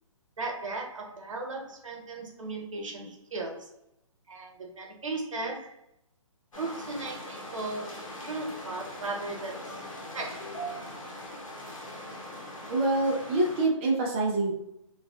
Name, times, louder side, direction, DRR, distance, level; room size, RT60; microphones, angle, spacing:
voice 1, 0.4-3.7 4.3-5.8 6.6-9.8 10.1-10.6, right 3 dB, 75° right, 0 dB, 0.9 m, -37 dB
sound 1, 6.5-13.7, equal, 90° left, 0.8 m, -41 dB
voice 2, 12.7-14.5, right 2 dB, 20° right, -2 dB, 0.4 m, -26 dB
2.6 x 2.3 x 2.3 m, 0.80 s
hypercardioid pair, 150°, 17 cm